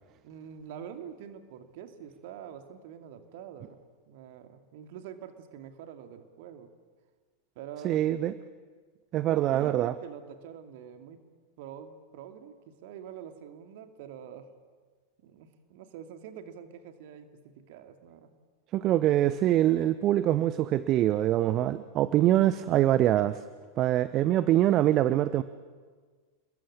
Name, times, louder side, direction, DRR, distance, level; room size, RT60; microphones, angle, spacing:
voice 1, 0.2-3.8 4.1-6.7 7.6-8.0 9.2-11.2 11.6-12.6 12.8-14.5 15.2-18.3, right 8 dB, 50° right, 7 dB, 2.5 m, -45 dB
voice 2, 7.8-8.3 9.1-9.9 18.7-23.4 23.8-25.4, right 13 dB, 35° right, 15 dB, 0.8 m, -24 dB
29.0 x 22.0 x 8.8 m, 1.5 s
figure-of-eight pair, 90°, 0 cm